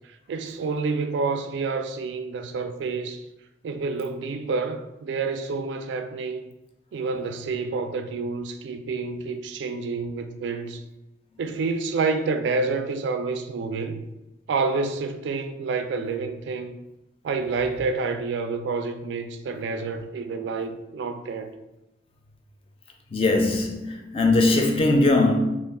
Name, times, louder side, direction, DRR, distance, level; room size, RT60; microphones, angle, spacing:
voice 1, 0.3-3.2 3.6-6.4 6.9-10.8 11.4-14.0 14.5-16.8 17.2-21.5, right 4 dB, 90° right, 0.3 m, -28 dB
voice 2, 23.1-25.4, left 2 dB, 30° left, 0.4 m, -20 dB
2.4 x 2.2 x 3.5 m
head